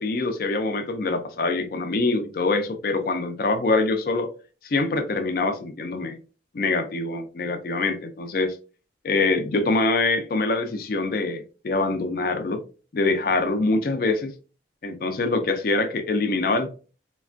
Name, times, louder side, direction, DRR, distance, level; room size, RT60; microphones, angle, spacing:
voice 1, 0.0-4.3 4.6-6.2 6.5-8.6 9.0-12.6 12.9-14.3 14.8-16.7, left 3 dB, 50° left, 0.4 m, -24 dB
3.2 x 2.2 x 2.4 m
head